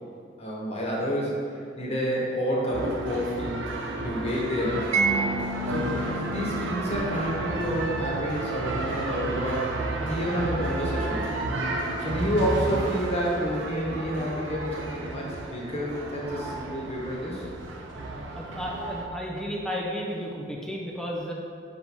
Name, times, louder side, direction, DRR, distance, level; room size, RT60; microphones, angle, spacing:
voice 1, 0.4-1.4 1.8-3.6 4.0-4.9 5.7-9.7 10.0-11.4 12.0-17.4, equal, 35° left, -4 dB, 1.3 m, -29 dB
sound 1, 2.7-19.1, right 2 dB, 90° right, 0.8 m, -32 dB
Mallet percussion, 4.9-11.7, right 3 dB, 35° right, 0.4 m, -34 dB
voice 2, 18.1-21.3, equal, 5° left, -2 dB, 0.7 m, -33 dB
5.0 x 4.8 x 5.4 m, 2.2 s
head